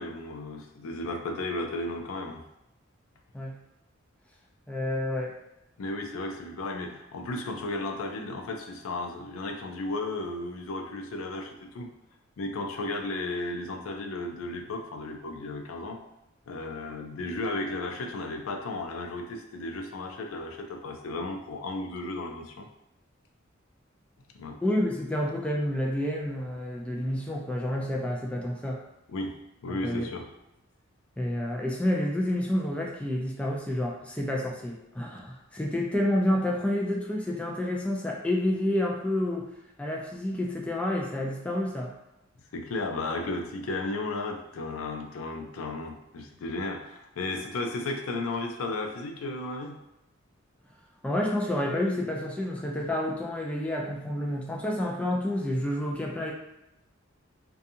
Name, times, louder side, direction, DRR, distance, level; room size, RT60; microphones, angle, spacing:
voice 1, 0.0-2.4 5.8-11.9 12.4-16.0 16.5-22.7 24.3-24.6 29.1-29.4 29.6-30.3 42.5-49.8, left 2 dB, 85° left, 3 dB, 0.4 m, -34 dB
voice 2, 4.7-5.3 24.6-28.8 29.8-30.1 31.2-39.5 39.8-41.9 51.0-56.3, left 1 dB, 5° left, -2 dB, 0.3 m, -29 dB
2.7 x 2.3 x 2.6 m, 0.87 s
head